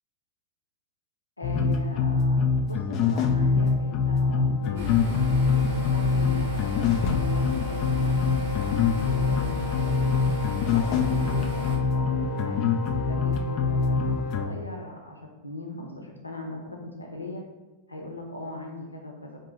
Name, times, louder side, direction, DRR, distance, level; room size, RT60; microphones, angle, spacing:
voice 1, 1.4-5.1 5.7-10.1 10.7-12.7 13.1-17.5 17.9-19.4, left 1 dB, 80° left, 1 dB, 0.6 m, -39 dB
sound 1, 1.4-14.5, left 4 dB, 40° left, 0.3 m, -24 dB
sound 2, 4.8-11.8, left 6 dB, 55° right, 0.8 m, -33 dB
3.6 x 2.9 x 3.0 m, 1.1 s
figure-of-eight pair, 90°, 0 cm